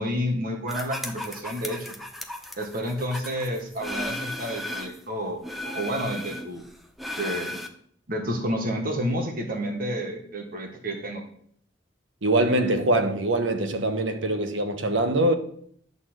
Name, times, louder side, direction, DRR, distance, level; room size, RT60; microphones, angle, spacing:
voice 1, 0.0-2.0 2.6-6.6 7.2-7.6 8.1-11.2, equal, 50° right, 1.4 m, -30 dB
sound 1, 0.7-5.0 5.4-7.7, left 1 dB, ahead, 0.9 m, -36 dB
voice 2, 12.2-15.3, right 1 dB, 75° right, 1.2 m, -23 dB
11.0 x 4.1 x 7.8 m
head